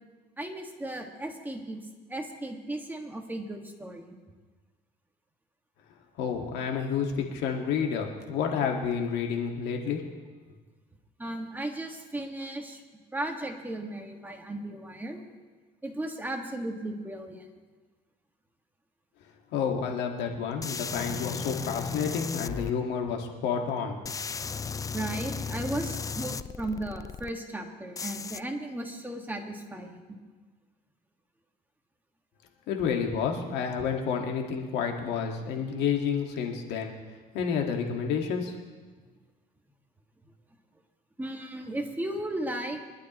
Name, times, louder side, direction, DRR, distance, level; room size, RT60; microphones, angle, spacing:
voice 1, 0.4-1.8 2.1-4.1 11.2-12.8 13.1-15.2 15.8-17.5 24.9-30.2 41.2-42.8, right 1 dB, 10° right, 2 dB, 1.7 m, -35 dB
voice 2, 6.2-10.1 19.5-24.0 32.7-36.9 37.3-38.5, left 6 dB, 90° left, 2 dB, 1.8 m, -30 dB
sound 1, 20.6-22.7 24.0-27.3 28.0-28.4, left 5 dB, 20° left, 0.3 m, -35 dB
24.5 x 11.5 x 3.0 m, 1.4 s
cardioid pair, 110°, 17 cm